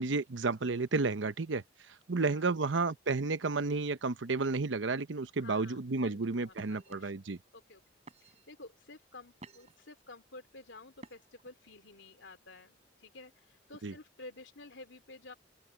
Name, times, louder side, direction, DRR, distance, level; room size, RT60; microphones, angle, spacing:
voice 1, 0.0-1.6 2.1-7.4 13.8-13.9, right 3 dB, 85° right, 0.8 m, -31 dB
voice 2, 2.2-2.6 5.4-7.1 7.5-7.8 8.2-15.3, left 2 dB, 80° left, 2.9 m, -52 dB
sound 1, 6.5-6.9 7.6-7.7 8.1-8.6 9.1-9.9 11.0-11.5, right 2 dB, 35° right, 3.5 m, -52 dB
open air
head